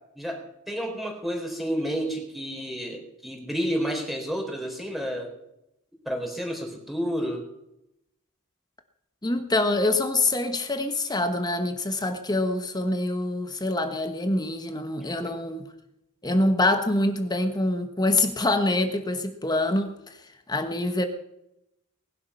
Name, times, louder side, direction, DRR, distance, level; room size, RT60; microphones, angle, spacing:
voice 1, 0.2-5.3 6.1-7.4 15.2-15.3, equal, ahead, 0 dB, 4.0 m, -30 dB
voice 2, 9.2-15.7 16.2-20.2 20.5-21.0, left 2 dB, 20° left, 7 dB, 1.3 m, -25 dB
20.0 x 11.5 x 5.7 m, 0.84 s
head